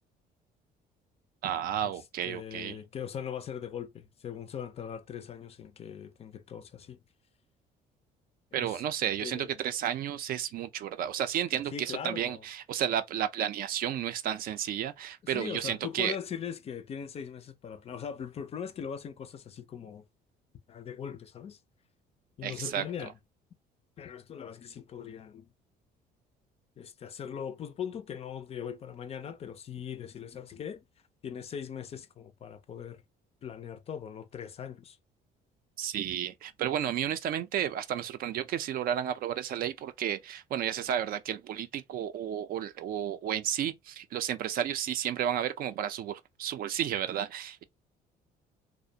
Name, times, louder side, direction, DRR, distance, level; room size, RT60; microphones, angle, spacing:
voice 1, 1.4-2.8 8.5-16.2 22.4-22.8 35.8-47.6, right 10 dB, 60° right, 0.4 m, -32 dB
voice 2, 2.2-7.0 8.5-8.7 9.2-9.5 11.7-12.4 15.2-20.0 20.7-21.6 22.4-23.1 24.0-25.5 26.8-30.8 31.2-33.0 33.4-35.0, left 8 dB, 35° left, 0.4 m, -40 dB
2.4 x 2.1 x 2.6 m
cardioid pair, 110°, 17 cm